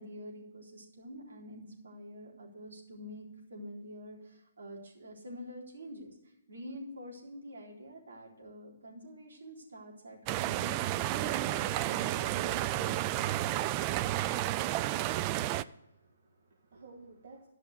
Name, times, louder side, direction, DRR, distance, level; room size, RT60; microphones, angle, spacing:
voice 1, 0.0-13.3, equal, 75° right, -2 dB, 3.9 m, -47 dB
sound 1, 10.3-15.6, right 14 dB, 30° right, 0.3 m, -31 dB
voice 2, 15.3-17.5, right 3 dB, 60° right, -2 dB, 1.9 m, -55 dB
12.5 x 5.9 x 8.0 m, 0.87 s
hypercardioid pair, 140°, 0 cm